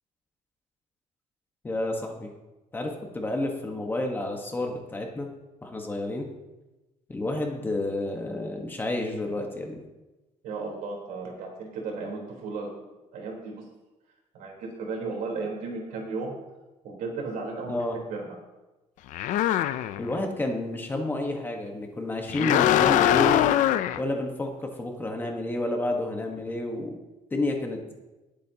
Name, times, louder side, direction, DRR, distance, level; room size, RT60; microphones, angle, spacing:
voice 1, 1.6-2.3 2.7-5.3 5.6-6.3 7.1-9.8 17.7-18.0 20.0-23.5 24.0-27.0 27.3-27.9, left 2 dB, 15° left, 2 dB, 1.3 m, -30 dB
voice 2, 10.4-12.7 13.1-13.6 14.3-16.3 16.8-17.8 18.1-18.3, right 3 dB, 85° right, 0 dB, 3.8 m, -34 dB
sound 1, 19.1-20.2 22.3-24.0, left 12 dB, 70° left, 0.5 m, -22 dB
19.0 x 8.5 x 2.9 m, 1.1 s
cardioid pair, 175°, 13 cm